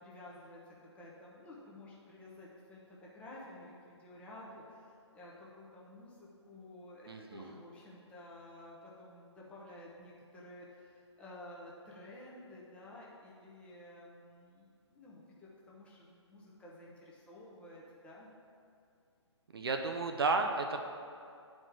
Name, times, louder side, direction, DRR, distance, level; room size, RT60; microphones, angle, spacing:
voice 1, 0.0-18.3, left 1 dB, 5° left, -5 dB, 0.8 m, -52 dB
voice 2, 7.1-7.5 19.5-20.8, right 3 dB, 55° right, 5 dB, 0.6 m, -32 dB
9.8 x 4.4 x 4.6 m, 2.4 s
figure-of-eight pair, 140°, 16 cm